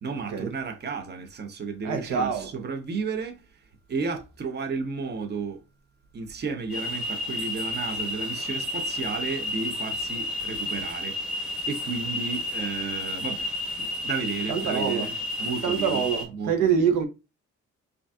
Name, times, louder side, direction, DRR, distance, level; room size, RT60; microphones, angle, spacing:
voice 1, 0.0-3.4 3.9-5.6 6.1-11.2 11.7-16.9, right 4 dB, 35° right, 0.8 m, -33 dB
voice 2, 1.8-2.5 14.5-15.1 15.6-17.0, right 7 dB, 85° right, 0.9 m, -25 dB
sound 1, 6.7-16.3, left 1 dB, 5° right, 1.2 m, -31 dB
5.1 x 2.6 x 2.3 m
cardioid pair, 90°, 30 cm